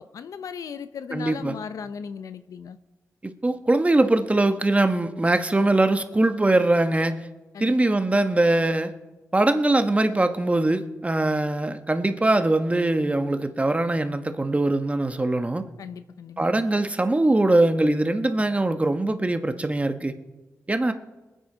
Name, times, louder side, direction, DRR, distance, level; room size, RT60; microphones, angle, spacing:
voice 1, 0.0-2.8 7.5-7.7 15.8-16.5, left 6 dB, 80° left, 12 dB, 0.6 m, -37 dB
voice 2, 1.1-1.6 3.2-7.3 7.6-8.9 9.3-15.6 16.4-20.2 20.7-20.9, right 2 dB, 25° right, 8 dB, 1.1 m, -22 dB
21.0 x 9.3 x 3.9 m, 1.1 s
cardioid pair, 60°, 6 cm